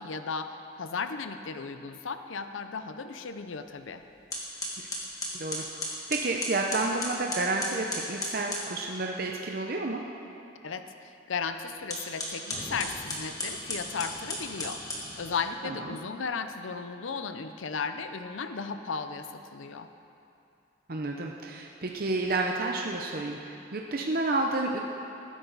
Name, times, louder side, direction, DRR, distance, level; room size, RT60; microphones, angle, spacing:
voice 1, 0.0-4.0 10.6-14.8 15.1-19.9, left 5 dB, 85° left, 9 dB, 0.6 m, -35 dB
sound 1, 3.8-3.9 4.3-8.7 11.8-15.5, left 1 dB, 20° left, 1.9 m, -35 dB
voice 2, 5.3-5.6 6.1-10.0 15.6-15.8 20.9-24.8, right 2 dB, 50° right, 1 dB, 0.7 m, -30 dB
19.0 x 10.0 x 4.0 m, 2.7 s
head